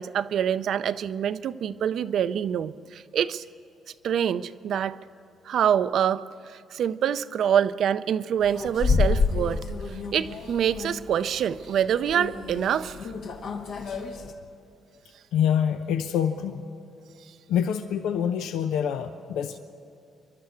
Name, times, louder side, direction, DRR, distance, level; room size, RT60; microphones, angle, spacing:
voice 1, 0.0-3.4 4.0-5.0 5.5-13.0, right 9 dB, 70° right, 13 dB, 0.5 m, -26 dB
sound 1, 8.4-14.3, left 4 dB, 75° left, 1.7 m, -28 dB
voice 2, 15.3-16.6 17.5-19.6, left 8 dB, 90° left, 8 dB, 0.7 m, -26 dB
27.5 x 11.5 x 8.2 m, 2.4 s
cardioid pair, 90°, 0 cm